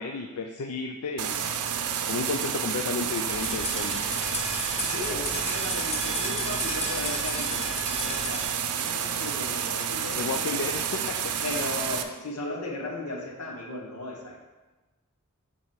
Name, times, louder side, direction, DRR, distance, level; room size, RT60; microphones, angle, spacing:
voice 1, 0.0-1.4 2.1-4.1 10.2-11.3, left 4 dB, 70° left, 4 dB, 0.4 m, -32 dB
sound 1, 1.2-12.0, right 8 dB, 90° right, 0.5 m, -30 dB
sound 2, 3.3-8.5, left 2 dB, 30° left, 0.9 m, -34 dB
voice 2, 4.8-10.9 11.4-14.4, left 2 dB, 90° left, 0 dB, 1.3 m, -36 dB
7.4 x 3.9 x 4.7 m, 1.2 s
head